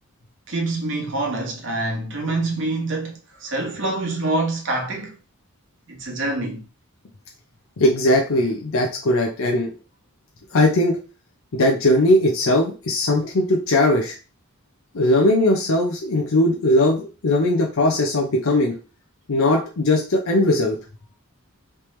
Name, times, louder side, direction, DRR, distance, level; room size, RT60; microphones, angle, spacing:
voice 1, 0.5-5.1 5.9-6.6, right 2 dB, 55° right, 1.1 m, -26 dB
voice 2, 7.8-9.7 10.5-11.0 11.5-14.2 14.9-18.7 19.3-20.8, left 1 dB, 75° left, 0.6 m, -19 dB
3.3 x 3.0 x 3.1 m
head